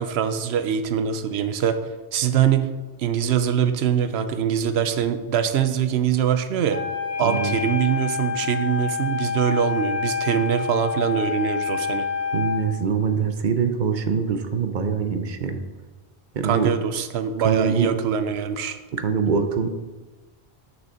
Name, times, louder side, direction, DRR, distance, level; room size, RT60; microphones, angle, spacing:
voice 1, 0.0-1.8 2.1-2.7 3.0-6.8 7.2-12.1 16.4-18.8, right 8 dB, 80° right, 10 dB, 0.8 m, -23 dB
Wind instrument woodwind instrument, 6.7-12.7, left 6 dB, 50° left, 1.9 m, -27 dB
voice 2, 7.2-7.5 12.3-15.7 16.3-16.7 17.4-17.9 18.9-19.7, right 6 dB, 55° right, 8 dB, 0.7 m, -23 dB
6.2 x 6.0 x 4.3 m, 1.2 s
omnidirectional pair, 1.1 m